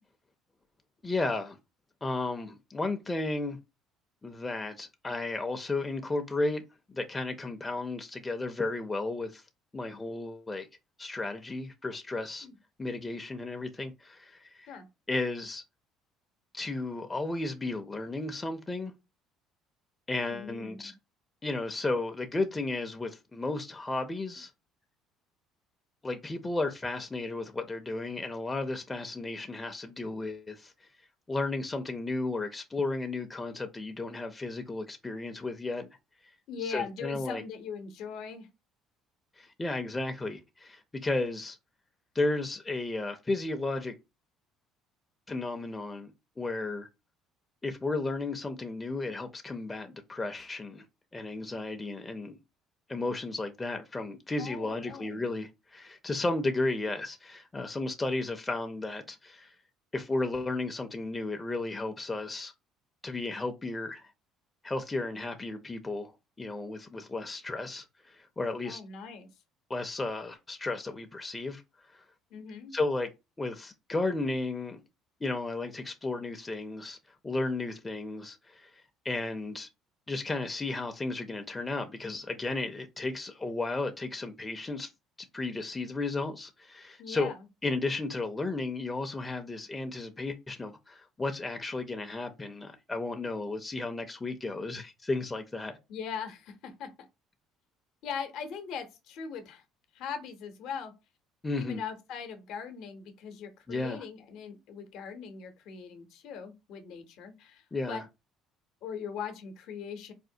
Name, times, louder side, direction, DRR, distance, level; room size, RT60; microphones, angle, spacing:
voice 1, 1.0-1.6 2.0-3.6 4.2-6.6 6.9-9.4 9.7-10.7 11.0-12.5 12.8-14.7 15.1-15.6 16.5-18.9 20.1-20.9 21.4-24.5 26.0-30.9 31.3-35.9 36.2-36.3 36.6-37.4 39.4-41.6 42.1-44.0 45.3-46.1 46.4-46.9 47.6-50.9 51.1-52.4 52.9-59.5 59.9-62.5 63.0-64.1 64.6-66.1 66.4-68.8 69.7-71.6 71.9-72.0 72.7-73.1 73.4-74.8 75.2-77.0 77.2-79.7 80.1-84.9 85.2-87.3 87.6-95.8 101.4-101.8 103.7-104.0 107.7-108.0, left 2 dB, 20° left, 0.5 m, -34 dB
voice 2, 20.3-20.9 36.5-38.5 54.4-55.3 68.6-69.3 72.3-72.7 87.0-87.5 95.9-96.9 98.0-99.6 99.9-100.9 101.5-108.0 108.8-110.1, left 6 dB, 70° left, 0.7 m, -40 dB
4.2 x 2.1 x 2.6 m
hypercardioid pair, 65°, 0 cm